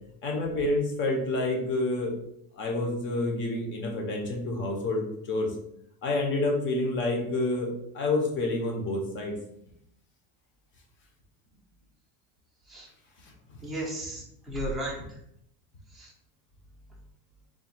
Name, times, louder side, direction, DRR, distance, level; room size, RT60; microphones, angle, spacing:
voice 1, 0.2-2.2 2.6-5.5 6.0-9.4 13.2-13.6, left 2 dB, 30° left, 0 dB, 0.8 m, -28 dB
voice 2, 13.6-15.2 15.9-16.1, right 1 dB, ahead, -5 dB, 0.5 m, -35 dB
3.7 x 2.3 x 4.3 m, 0.74 s
cardioid pair, 175°, 41 cm